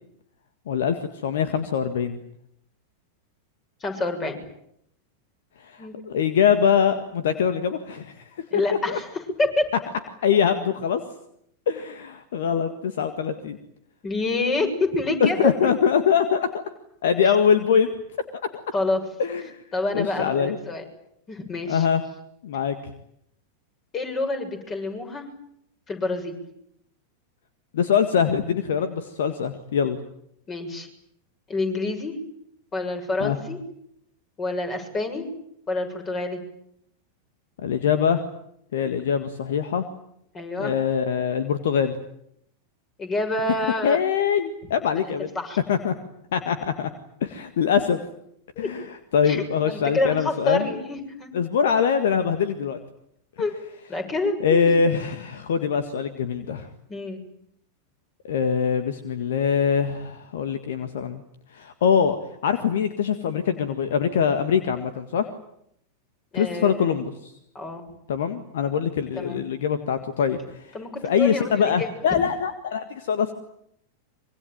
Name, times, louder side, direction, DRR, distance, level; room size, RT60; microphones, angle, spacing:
voice 1, 0.7-2.2 5.6-8.2 8.5-8.6 8.9-9.0 10.2-11.0 11.7-13.6 15.2-16.6 17.0-18.0 18.3-18.4 19.2-19.6 19.9-20.6 21.7-22.0 22.4-22.8 27.7-30.0 33.2-33.4 37.6-38.2 38.7-39.8 40.6-42.0 43.8-45.3 45.7-45.9 46.3-46.9 47.2-48.0 48.6-48.9 49.1-50.7 51.3-52.8 54.4-56.7 58.2-61.2 61.5-65.3 66.3-67.3 68.1-70.4 70.6-70.7 71.0-73.3, left 7 dB, 60° left, 10 dB, 1.8 m, -23 dB
voice 2, 3.8-4.4 5.8-6.0 8.5-9.1 9.4-9.7 14.0-15.7 18.7-19.0 19.7-20.8 21.3-21.9 23.9-25.3 25.9-26.4 30.5-30.9 31.5-32.2 32.7-33.6 34.4-35.3 35.7-36.4 40.3-40.7 43.0-44.0 45.3-45.6 48.6-48.7 49.2-51.3 53.4-53.5 53.9-54.7 56.9-57.2 66.3-66.9 67.5-67.8 69.1-69.4 70.7-72.1, left 2 dB, 25° left, 6 dB, 6.8 m, -27 dB
25.0 x 24.0 x 9.2 m, 0.75 s
figure-of-eight pair, 90°, 0 cm